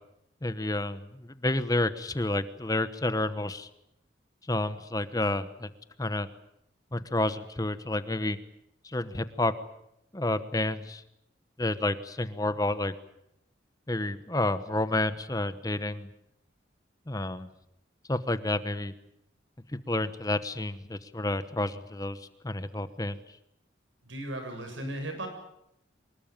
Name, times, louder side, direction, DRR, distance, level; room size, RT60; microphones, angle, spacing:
voice 1, 0.4-3.7 4.5-5.7 6.0-6.3 6.9-8.4 8.8-9.5 10.1-11.0 11.6-12.9 13.9-16.1 17.1-17.5 18.1-18.9 19.7-22.2 22.4-23.2, left 2 dB, 20° left, 12 dB, 1.0 m, -30 dB
voice 2, 24.0-25.3, right 1 dB, 85° right, 6 dB, 7.8 m, -36 dB
25.0 x 21.0 x 8.9 m, 0.79 s
head